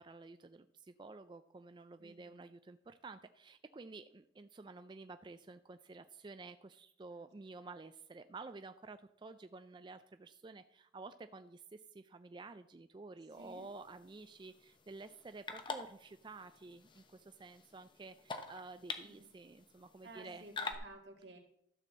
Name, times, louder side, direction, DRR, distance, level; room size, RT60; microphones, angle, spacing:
voice 1, 0.0-20.4, right 3 dB, 25° right, 10 dB, 0.4 m, -51 dB
voice 2, 2.0-2.4 7.1-7.6 13.4-13.7 19.0-19.3 20.0-21.4, right 2 dB, 80° right, 2 dB, 2.2 m, -55 dB
sound 1, 13.3-20.7, left 4 dB, 25° left, 0.9 m, -48 dB
13.0 x 4.3 x 7.3 m, 0.72 s
head